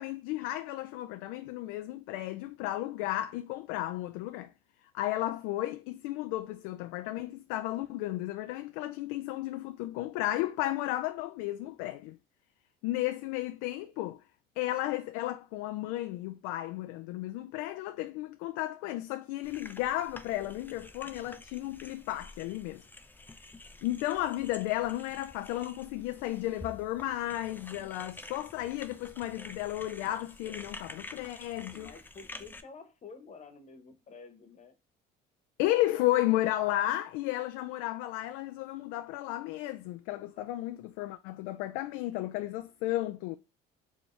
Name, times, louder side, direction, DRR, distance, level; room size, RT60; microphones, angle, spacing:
voice 1, 0.0-4.5 4.9-12.2 12.8-14.2 14.6-22.8 23.8-31.9 35.6-43.4, left 15 dB, 80° left, 0.4 m, -33 dB
sound 1, 19.4-32.6, left 2 dB, 10° left, 0.5 m, -49 dB
voice 2, 31.5-34.8 35.8-36.2 40.4-40.5, left 4 dB, 35° left, 1.1 m, -51 dB
4.6 x 2.9 x 3.1 m
supercardioid pair, 100°, 21 cm